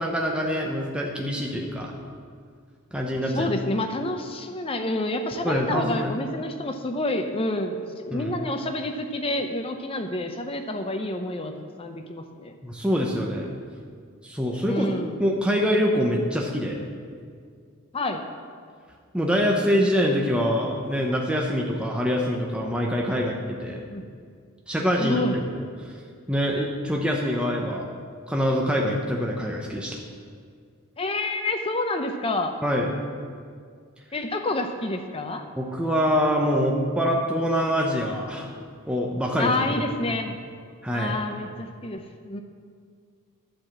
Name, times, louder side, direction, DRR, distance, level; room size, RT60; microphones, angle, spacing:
voice 1, 0.0-1.9 2.9-3.5 5.4-6.1 8.1-8.3 12.6-13.5 14.2-14.9 15.2-16.8 19.1-23.8 24.7-25.9 26.3-27.9 28.3-30.0 32.6-32.9 35.6-38.5 38.9-39.5 40.1-40.2 40.8-41.2, equal, 5° right, -1 dB, 0.8 m, -25 dB
voice 2, 3.3-12.5 14.6-15.2 17.9-18.2 23.1-23.3 23.9-24.0 25.0-25.4 31.0-32.5 34.1-35.5 39.4-40.4 40.9-42.4, left 2 dB, 25° left, 6 dB, 0.6 m, -28 dB
11.5 x 5.0 x 7.4 m, 2.1 s
head